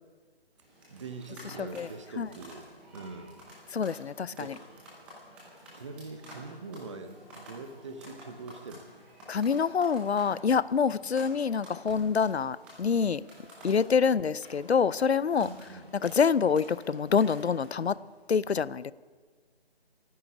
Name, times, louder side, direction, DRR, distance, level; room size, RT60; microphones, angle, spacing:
sound 1, 0.6-17.9, equal, 5° right, 0.8 m, -51 dB
voice 1, 0.9-2.7 2.9-3.5 3.9-4.0 4.3-4.5 5.7-8.8 14.1-14.2 15.4-15.9, right 3 dB, 30° right, 1.0 m, -43 dB
voice 2, 3.7-4.5 9.3-13.2 13.6-15.5 15.9-18.0 18.3-18.9, left 6 dB, 80° left, 0.6 m, -26 dB
24.0 x 9.6 x 5.0 m
figure-of-eight pair, 155°, 32 cm